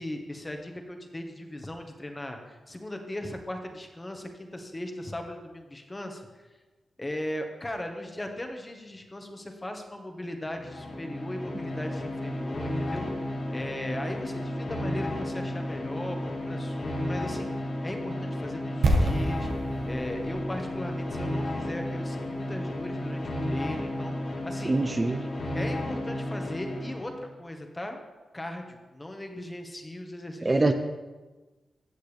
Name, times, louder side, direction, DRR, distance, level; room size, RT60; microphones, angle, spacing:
voice 1, 0.0-6.5 7.0-17.5 17.8-19.5 19.8-24.8 25.5-28.0 28.3-30.7, left 1 dB, 25° left, 4 dB, 1.6 m, -38 dB
sound 1, 10.5-27.3, left 1 dB, 55° left, 1.7 m, -33 dB
sound 2, 18.8-22.8 23.0-23.1, right 1 dB, 75° right, 1.4 m, -29 dB
voice 2, 24.7-25.2 30.4-30.7, right 2 dB, 30° right, 7 dB, 0.7 m, -23 dB
15.5 x 6.6 x 3.5 m, 1.2 s
supercardioid pair, 50°, 0 cm